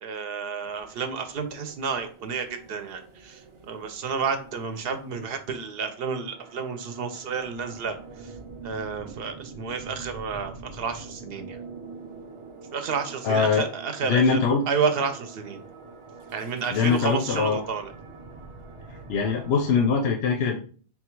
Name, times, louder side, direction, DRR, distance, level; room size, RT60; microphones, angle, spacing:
voice 1, 0.0-8.3 8.6-11.6 12.7-14.4 14.7-15.6 16.3-17.9, right 5 dB, 70° right, 8 dB, 0.8 m, -30 dB
sound 1, 0.6-19.9, right 3 dB, 40° right, 0.4 m, -45 dB
voice 2, 13.2-13.7 14.0-14.6 16.7-17.6 19.1-20.6, left 5 dB, 75° left, 3 dB, 0.8 m, -22 dB
3.8 x 2.3 x 4.4 m, 0.42 s
omnidirectional pair, 1.1 m